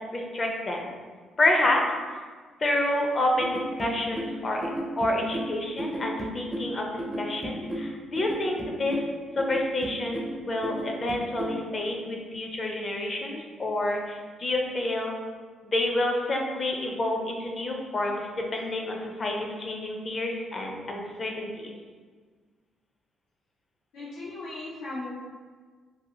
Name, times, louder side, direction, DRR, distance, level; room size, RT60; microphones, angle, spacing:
voice 1, 0.1-0.9 1.4-1.8 2.1-2.2 2.6-4.6 5.0-9.0 9.4-15.1 15.6-21.7, left 1 dB, 35° left, 1 dB, 0.5 m, -28 dB
sound 1, 3.4-11.6, right 1 dB, 20° right, 0.4 m, -34 dB
voice 2, 23.9-25.1, left 2 dB, 85° left, -9 dB, 0.6 m, -37 dB
2.7 x 2.4 x 2.7 m, 1.5 s
cardioid pair, 90°, 0 cm